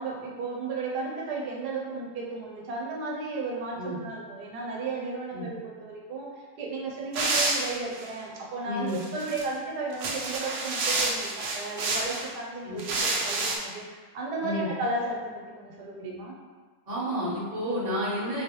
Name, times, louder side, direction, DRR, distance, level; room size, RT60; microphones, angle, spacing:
voice 1, 0.0-16.4, right 3 dB, 90° right, -1 dB, 1.2 m, -34 dB
sound 1, 7.1-8.1 8.9-9.4 9.9-12.3 12.8-13.6, right 3 dB, 70° right, 0.6 m, -29 dB
voice 2, 8.6-9.0 12.6-12.8 14.4-14.7 16.9-18.4, equal, 30° right, -10 dB, 1.1 m, -30 dB
3.2 x 3.1 x 2.9 m, 1.5 s
omnidirectional pair, 1.7 m